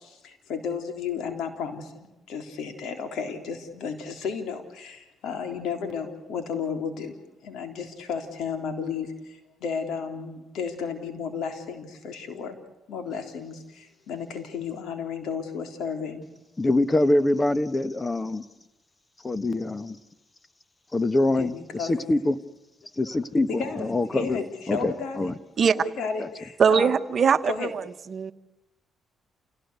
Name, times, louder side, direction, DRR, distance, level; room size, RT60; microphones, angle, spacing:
voice 1, 0.0-7.2 7.4-12.6 12.9-16.2 21.4-22.1 23.1-23.2 23.5-25.3 25.8-26.9 27.5-27.7, left 6 dB, 80° left, 6 dB, 3.7 m, -33 dB
voice 2, 16.6-18.4 19.2-20.0 20.9-22.4 23.0-24.4 24.7-25.3 26.2-26.3, left 2 dB, 20° left, 14 dB, 1.3 m, -24 dB
voice 3, 26.6-27.8 28.1-28.3, right 6 dB, 50° right, 11 dB, 1.2 m, -21 dB
28.0 x 17.5 x 8.2 m, 1.0 s
cardioid pair, 90°, 0 cm